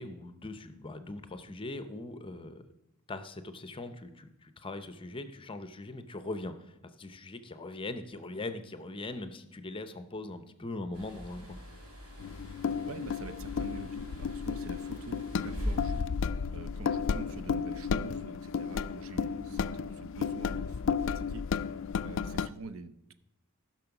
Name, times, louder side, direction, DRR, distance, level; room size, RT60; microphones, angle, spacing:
voice 1, 0.0-2.6 3.1-6.5 7.0-11.6 19.3-19.6, left 2 dB, 25° left, 10 dB, 0.7 m, -41 dB
sound 1, 10.9-16.0, left 1 dB, 85° right, 4.7 m, -41 dB
sound 2, 12.2-22.5, left 6 dB, 60° left, 0.3 m, -33 dB
voice 2, 12.9-16.0 16.5-21.8 22.0-23.1, right 3 dB, 65° right, 12 dB, 0.6 m, -46 dB
14.5 x 6.0 x 5.9 m, 0.86 s
head